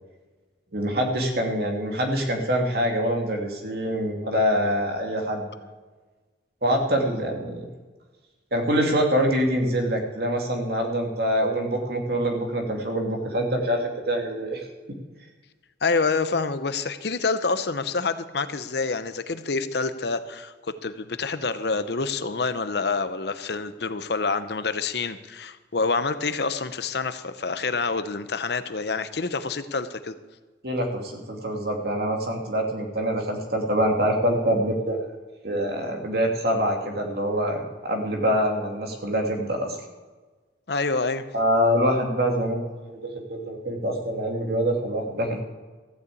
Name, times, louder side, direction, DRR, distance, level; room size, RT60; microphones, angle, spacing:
voice 1, 0.7-5.7 6.6-7.6 8.5-14.7 30.6-35.0 35.4-39.8 41.3-45.4, equal, 55° right, 2 dB, 2.5 m, -25 dB
voice 2, 15.8-20.5 20.8-30.1 40.7-41.2, left 4 dB, 60° left, 12 dB, 0.8 m, -27 dB
14.5 x 6.8 x 8.5 m, 1.3 s
head